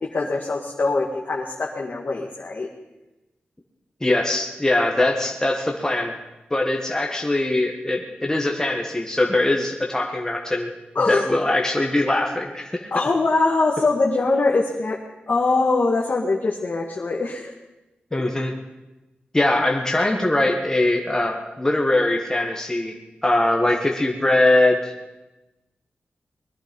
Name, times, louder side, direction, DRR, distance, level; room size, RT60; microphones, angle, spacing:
voice 1, 0.0-2.7 11.0-11.2 12.9-15.0 15.3-17.5 18.1-18.2, left 3 dB, 55° left, -2 dB, 1.9 m, -22 dB
voice 2, 4.0-6.1 6.5-10.7 11.1-12.9 18.1-18.5 19.3-22.9 23.2-24.9, left 1 dB, 15° left, 1 dB, 1.7 m, -21 dB
21.0 x 11.0 x 5.4 m, 1.0 s
cardioid pair, 75°, 4 cm